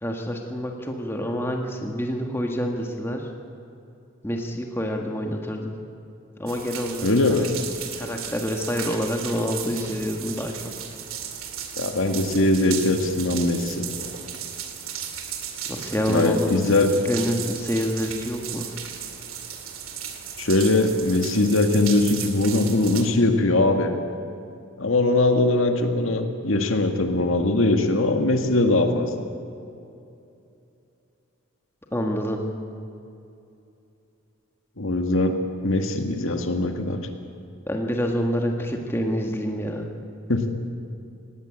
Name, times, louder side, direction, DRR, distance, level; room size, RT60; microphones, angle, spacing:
voice 1, 0.0-3.3 4.2-5.7 6.4-7.1 7.9-10.5 15.7-16.6 17.1-18.8 31.9-32.4 37.7-39.9, equal, 10° left, 2 dB, 1.8 m, -27 dB
sound 1, 6.5-23.0, right 8 dB, 80° right, 2.4 m, -35 dB
voice 2, 7.0-7.4 11.8-13.9 16.1-16.9 20.4-24.0 24.8-29.2 34.8-35.3 35.6-37.0 40.3-40.4, left 2 dB, 75° left, 5 dB, 2.0 m, -21 dB
19.0 x 18.0 x 8.8 m, 2.7 s
head